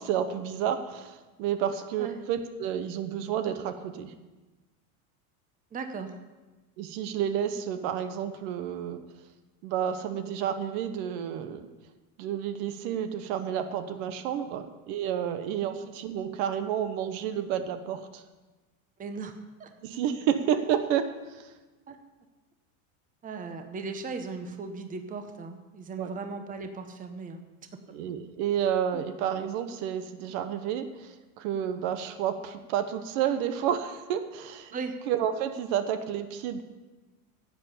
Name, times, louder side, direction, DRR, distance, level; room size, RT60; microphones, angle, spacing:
voice 1, 0.0-4.1 6.8-9.0 9.6-11.7 12.2-18.2 19.8-21.5 26.0-26.1 27.9-34.7 35.1-36.6, right 9 dB, 60° right, 9 dB, 1.1 m, -30 dB
voice 2, 5.7-6.1 15.6-15.8 19.0-19.7 21.9-22.0 23.2-27.4 28.9-29.1 34.7-35.0, right 4 dB, 20° right, 7 dB, 0.9 m, -37 dB
11.0 x 8.0 x 7.0 m, 1.2 s
supercardioid pair, 130°, 43 cm